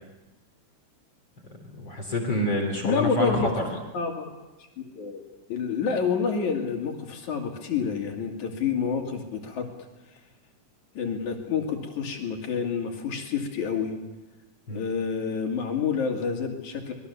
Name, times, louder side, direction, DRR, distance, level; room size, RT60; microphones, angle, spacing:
voice 1, 1.8-3.6 14.7-14.8, left 1 dB, 40° left, 3 dB, 3.4 m, -27 dB
voice 2, 2.8-3.6 3.9-4.3 4.6-5.2 5.5-9.7 11.0-13.9 14.7-16.9, left 6 dB, 65° left, 2 dB, 3.9 m, -28 dB
25.5 x 21.0 x 7.1 m, 1.1 s
omnidirectional pair, 3.7 m